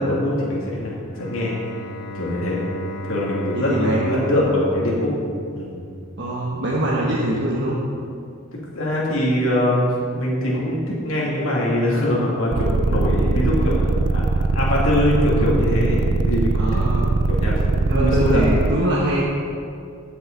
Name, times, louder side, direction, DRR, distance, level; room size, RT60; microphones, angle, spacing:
voice 1, 0.0-1.5 2.1-2.6 3.0-5.1 5.5-5.8 8.5-14.2 14.5-16.8 17.3-18.5, left 1 dB, 65° left, -5 dB, 2.6 m, -23 dB
Bowed string instrument, 1.1-6.0, left 1 dB, 35° left, 2.8 m, -34 dB
voice 2, 3.5-4.4 6.2-7.8 16.6-17.1 17.9-19.3, right 1 dB, 50° right, -6 dB, 1.3 m, -23 dB
sound 1, 12.5-18.7, right 3 dB, 75° right, 0.5 m, -20 dB
15.5 x 8.0 x 4.0 m, 2.4 s
head